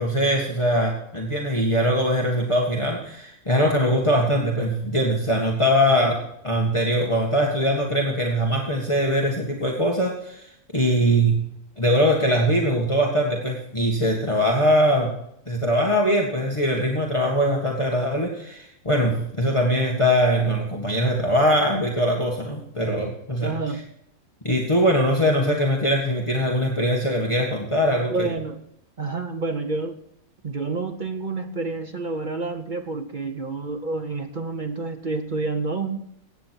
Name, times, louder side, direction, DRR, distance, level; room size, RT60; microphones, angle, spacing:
voice 1, 0.0-11.3 11.8-15.1 15.5-23.5 24.4-28.3, equal, 20° left, -1 dB, 1.9 m, -22 dB
voice 2, 23.4-23.9 28.1-28.6 29.0-30.0 30.4-36.0, right 3 dB, 40° right, 6 dB, 1.0 m, -29 dB
15.5 x 9.4 x 4.6 m, 0.74 s
omnidirectional pair, 1.4 m